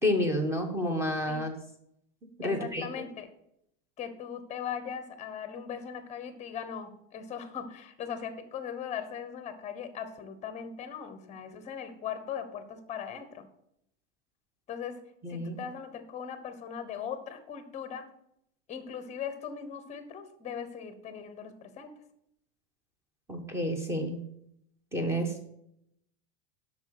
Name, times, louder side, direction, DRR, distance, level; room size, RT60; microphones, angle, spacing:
voice 1, 0.0-1.5 2.4-3.0 15.2-15.6 23.3-24.2 24.9-25.3, left 1 dB, 5° right, 5 dB, 1.3 m, -30 dB
voice 2, 2.4-3.3 4.0-13.5 14.7-18.1 18.7-21.9, left 7 dB, 20° left, 10 dB, 1.1 m, -39 dB
8.2 x 6.1 x 6.6 m, 0.76 s
supercardioid pair, 155°, 35 cm